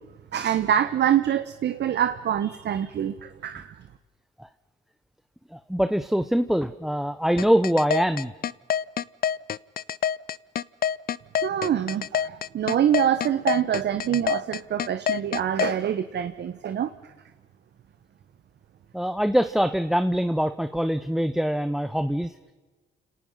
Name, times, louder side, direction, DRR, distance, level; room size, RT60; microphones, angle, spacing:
voice 1, 0.3-3.7 11.4-16.9, right 9 dB, 60° right, 10 dB, 1.1 m, -25 dB
voice 2, 5.5-8.3 18.9-22.5, equal, ahead, 10 dB, 0.9 m, -24 dB
sound 1, 7.4-15.7, left 9 dB, 50° left, 0.6 m, -26 dB
29.5 x 18.5 x 5.6 m, 1.2 s
cardioid pair, 90°, 20 cm